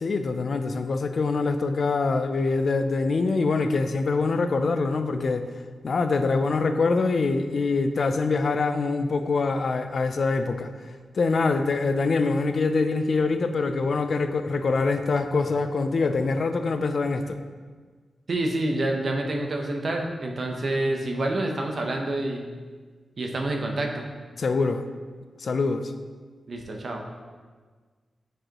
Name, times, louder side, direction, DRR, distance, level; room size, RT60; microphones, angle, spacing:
voice 1, 0.0-5.5 5.8-10.7 11.1-17.4 24.4-24.8 25.4-25.9, left 3 dB, 50° left, 8 dB, 0.3 m, -24 dB
voice 2, 18.3-22.5 23.2-24.0 26.5-27.0, right 1 dB, 45° right, 2 dB, 0.7 m, -27 dB
9.0 x 4.6 x 2.9 m, 1.5 s
wide cardioid pair, 160°, 0 cm